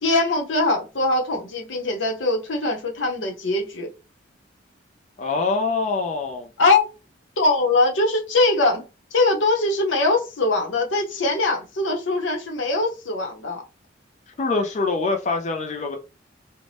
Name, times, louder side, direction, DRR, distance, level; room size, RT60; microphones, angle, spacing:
voice 1, 0.0-3.9 6.6-6.9 7.4-8.8 9.1-13.6, left 2 dB, 80° left, 0.8 m, -22 dB
voice 2, 5.2-6.5 14.4-16.0, left 3 dB, 40° left, 0.4 m, -24 dB
2.6 x 2.1 x 3.2 m
head